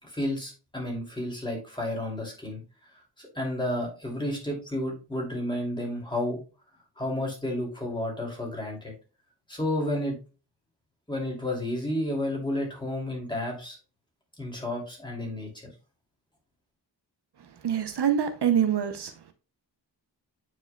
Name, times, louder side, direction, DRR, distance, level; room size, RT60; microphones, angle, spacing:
voice 1, 0.0-2.6 3.2-6.4 7.0-8.9 9.5-10.1 11.1-13.8 14.4-15.7, left 1 dB, 10° left, 2.8 m, -31 dB
voice 2, 17.6-19.1, right 9 dB, 65° right, 0.8 m, -25 dB
9.1 x 4.8 x 2.3 m
wide cardioid pair, 135°, 43 cm